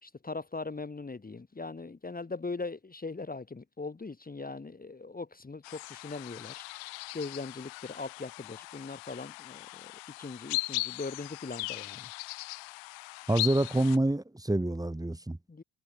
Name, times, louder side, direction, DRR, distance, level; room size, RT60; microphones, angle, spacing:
voice 1, 0.0-6.6 7.1-9.9 10.2-12.1 15.5-15.6, left 3 dB, 20° left, 2.3 m, -40 dB
sound 1, 5.6-14.0, left 32 dB, 75° left, 3.5 m, -39 dB
voice 2, 13.3-15.4, right 1 dB, 10° right, 2.4 m, -27 dB
hypercardioid pair, 60°, 45 cm